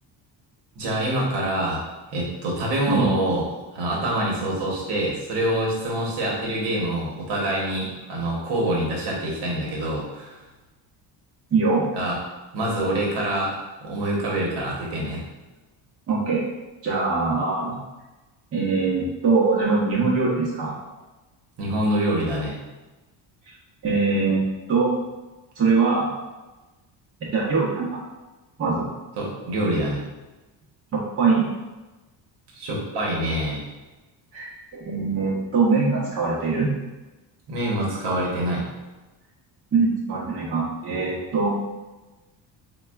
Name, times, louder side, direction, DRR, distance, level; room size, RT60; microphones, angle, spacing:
voice 1, 0.8-1.8 2.1-3.4 3.7-10.4 11.9-12.2 12.5-15.2 21.6-22.6 29.2-30.0 32.5-33.6 37.5-38.6, right 1 dB, 65° right, -3 dB, 0.9 m, -25 dB
voice 2, 11.5-11.8 16.1-16.4 16.8-17.8 18.5-20.7 23.8-24.4 24.7-24.9 25.6-26.1 27.2-28.0 28.6-28.9 30.9-31.5 34.3-36.7 39.7-41.5, right 4 dB, 35° right, -6 dB, 0.7 m, -22 dB
4.1 x 2.3 x 2.3 m, 1.1 s
cardioid pair, 155°, 44 cm